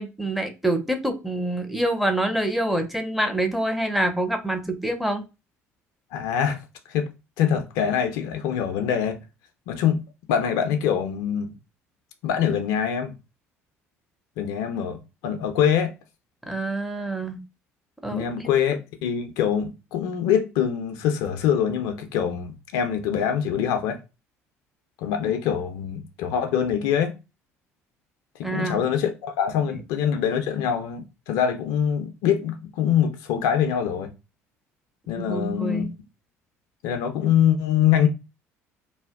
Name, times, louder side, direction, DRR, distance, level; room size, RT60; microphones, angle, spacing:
voice 1, 0.0-5.2 16.4-17.4 18.0-18.5 28.4-28.8 35.3-35.9, right 1 dB, ahead, 0.5 m, -26 dB
voice 2, 6.1-6.6 6.9-7.1 7.4-9.2 9.7-11.6 12.2-13.2 14.4-15.9 18.1-24.0 25.0-27.1 28.4-34.1 35.1-35.8 36.8-38.1, left 8 dB, 60° left, 0.4 m, -24 dB
2.6 x 2.1 x 2.2 m
figure-of-eight pair, 55°, 8 cm